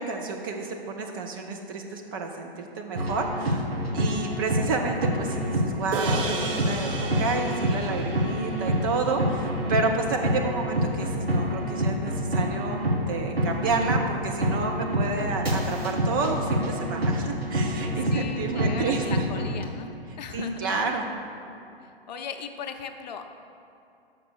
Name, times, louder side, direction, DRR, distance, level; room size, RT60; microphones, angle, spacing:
voice 1, 0.0-3.6 3.9-12.8 13.1-19.3 20.3-21.2, right 3 dB, 25° right, 2 dB, 0.4 m, -30 dB
sound 1, 3.0-19.7, equal, 80° right, 1.3 m, -27 dB
sound 2, 5.9-10.5, right 3 dB, 60° right, 1.0 m, -35 dB
voice 2, 18.1-19.9 20.2-20.7 22.1-23.3, left 6 dB, 45° left, 6 dB, 0.6 m, -38 dB
5.9 x 5.9 x 6.2 m, 2.7 s
figure-of-eight pair, 115°, 30 cm